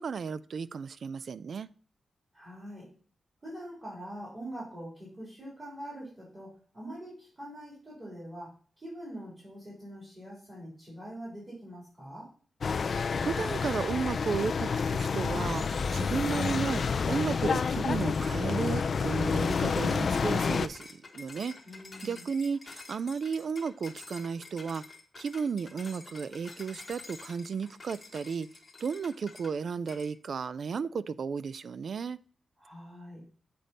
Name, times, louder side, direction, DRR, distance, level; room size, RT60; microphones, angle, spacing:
voice 1, 0.0-1.7 13.2-21.5 22.0-24.8 25.2-28.5 28.8-32.2, right 5 dB, 55° right, 0.3 m, -34 dB
voice 2, 2.3-2.9 3.4-6.5 6.7-8.5 8.8-12.3 21.7-22.2 32.6-33.2, equal, 25° right, 3.6 m, -44 dB
sound 1, 12.6-20.7, left 5 dB, 45° left, 0.4 m, -29 dB
sound 2, 18.0-29.6 29.9-30.1, left 3 dB, 25° left, 1.3 m, -49 dB
7.6 x 5.1 x 4.1 m
wide cardioid pair, 165°, 0 cm